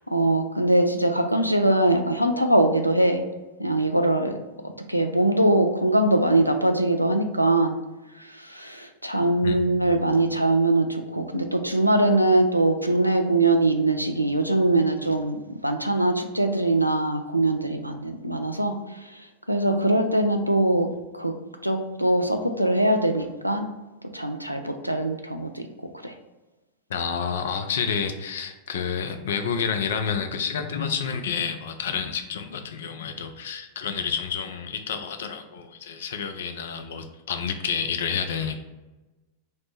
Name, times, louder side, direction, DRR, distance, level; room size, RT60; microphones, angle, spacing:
voice 1, 0.1-3.2 3.6-4.4 4.9-7.8 8.2-21.3 21.6-23.7 24.1-25.7 26.0-26.1, right 1 dB, 90° right, 5 dB, 0.3 m, -22 dB
voice 2, 9.4-10.0 26.9-38.5, left 6 dB, 60° left, 6 dB, 0.4 m, -29 dB
3.2 x 2.0 x 4.2 m, 1.1 s
figure-of-eight pair, 90°, 0 cm